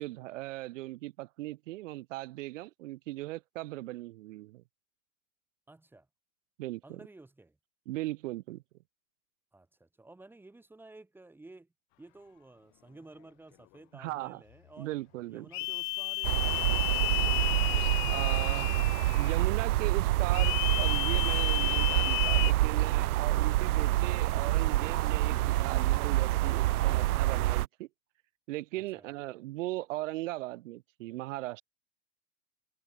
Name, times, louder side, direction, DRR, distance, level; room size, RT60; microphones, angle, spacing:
voice 1, 0.0-4.6 6.6-7.0 7.9-8.6 13.9-14.4 14.8-15.5 18.1-18.7 19.1-27.9 28.5-31.6, right 18 dB, 60° right, 2.9 m, -38 dB
voice 2, 5.7-6.1 6.8-7.6 9.5-11.7 12.0-14.9 15.3-17.4 28.7-29.1, right 2 dB, 5° right, 7.6 m, -54 dB
sound 1, 15.5-19.4 20.3-22.5, left 32 dB, 35° left, 1.1 m, -32 dB
sound 2, 16.2-27.7, right 16 dB, 80° right, 1.0 m, -27 dB
supercardioid pair, 170°, 43 cm